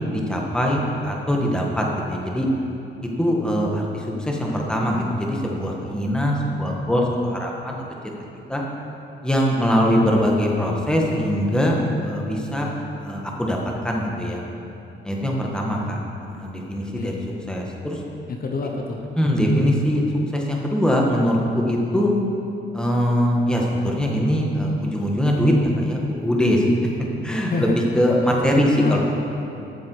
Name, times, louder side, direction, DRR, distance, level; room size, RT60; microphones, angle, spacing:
voice 1, 0.1-2.5 3.2-7.8 8.5-8.6 9.2-12.7 13.0-13.6 13.8-14.4 15.0-16.0 16.3-17.1 17.5-18.0 19.2-20.0 20.3-22.1 22.7-26.8 27.2-29.0, equal, 5° left, -1 dB, 1.8 m, -22 dB
voice 2, 18.3-19.0 27.5-27.7 28.2-29.0, left 4 dB, 45° left, 2 dB, 1.0 m, -28 dB
13.0 x 7.4 x 4.7 m, 2.8 s
cardioid pair, 90°, 20 cm